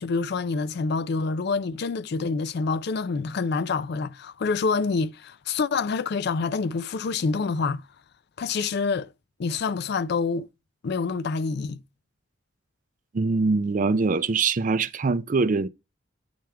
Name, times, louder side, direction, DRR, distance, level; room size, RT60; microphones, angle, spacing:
voice 1, 0.0-7.8 8.4-9.1 9.4-10.5 10.8-11.8, left 4 dB, 50° left, 0.4 m, -27 dB
voice 2, 13.1-15.7, right 4 dB, 40° right, 0.4 m, -23 dB
8.8 x 3.5 x 4.5 m
head